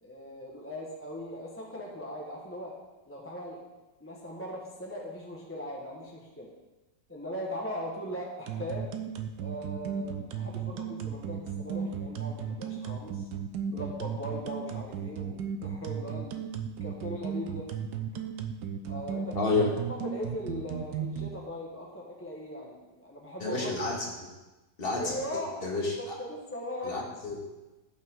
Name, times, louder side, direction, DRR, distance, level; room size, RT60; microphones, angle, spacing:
voice 1, 0.0-2.7 3.1-3.6 4.0-6.5 7.1-8.9 9.4-13.3 13.7-16.4 16.8-17.7 18.1-18.2 18.8-19.5 20.0-23.8 24.9-25.6 26.0-27.1, equal, 10° left, -2 dB, 1.1 m, -39 dB
sound 1, 8.5-21.3, right 8 dB, 75° right, 1.4 m, -35 dB
voice 2, 19.4-19.7 23.4-24.1 24.8-25.2 25.6-26.2 26.8-27.4, left 3 dB, 30° left, -1 dB, 1.9 m, -29 dB
17.0 x 5.6 x 3.8 m, 1.1 s
omnidirectional pair, 1.9 m